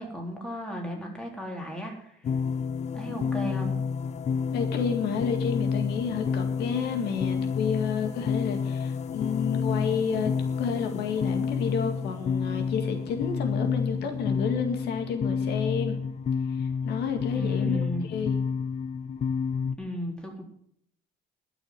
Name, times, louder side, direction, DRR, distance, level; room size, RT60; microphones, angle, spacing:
voice 1, 0.0-2.3 2.9-3.8 17.3-18.2 19.8-20.4, equal, 5° left, 0 dB, 3.9 m, -36 dB
sound 1, 2.2-19.7, left 6 dB, 40° left, 0.7 m, -29 dB
voice 2, 4.5-10.3 10.6-16.0 16.6-18.4, left 6 dB, 80° left, 5 dB, 2.0 m, -30 dB
12.5 x 6.3 x 9.6 m, 0.69 s
cardioid pair, 110°, 17 cm